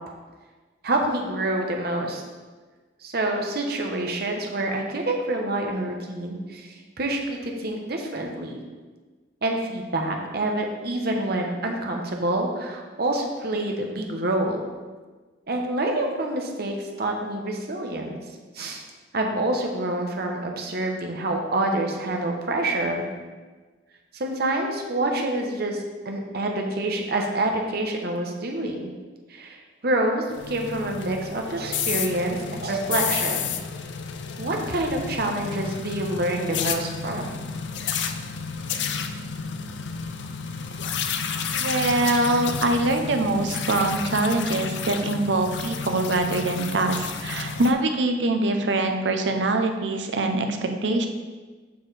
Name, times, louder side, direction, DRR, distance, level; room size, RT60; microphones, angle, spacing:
voice 1, 0.8-2.2 3.0-8.5 9.4-14.6 15.5-18.2 18.5-18.8 19.1-23.0 24.1-28.9 29.3-29.6 29.8-33.6 34.4-37.3, right 1 dB, 60° right, 2 dB, 1.0 m, -27 dB
sound 1, 30.3-47.7, left 6 dB, 75° left, 0.5 m, -31 dB
voice 2, 41.5-51.1, right 2 dB, 85° right, 5 dB, 0.7 m, -24 dB
7.0 x 6.2 x 3.3 m, 1.4 s
head